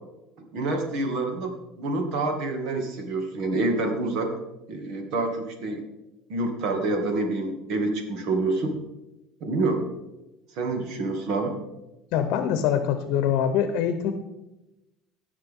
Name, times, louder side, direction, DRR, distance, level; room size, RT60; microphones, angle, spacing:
voice 1, 0.5-4.3 4.7-5.8 6.3-8.7 9.4-9.9 10.5-11.6, right 2 dB, 65° right, 4 dB, 2.2 m, -27 dB
voice 2, 12.1-14.1, left 9 dB, 70° left, 9 dB, 0.8 m, -24 dB
18.0 x 6.5 x 3.7 m, 0.97 s
cardioid pair, 125°, 0 cm